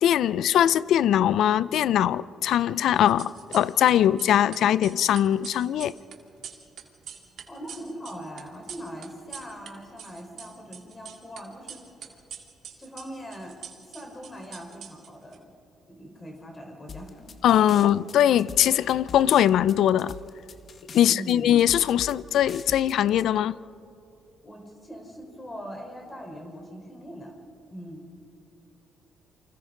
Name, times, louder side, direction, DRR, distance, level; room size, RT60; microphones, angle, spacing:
voice 1, 0.0-5.9 17.4-20.1 20.9-23.6, left 11 dB, 75° left, 0.4 m, -21 dB
sound 1, 3.0-9.7 10.0-11.4 11.7-15.4, right 8 dB, 70° right, 2.1 m, -43 dB
voice 2, 7.5-11.8 12.8-13.5 13.8-15.5 15.9-17.3 17.7-18.0 20.9-21.5 24.4-27.3 27.7-28.0, equal, 25° left, 4.3 m, -41 dB
sound 2, 16.9-23.2, left 6 dB, 50° left, 1.2 m, -43 dB
28.5 x 25.0 x 3.8 m
cardioid pair, 90°, 0 cm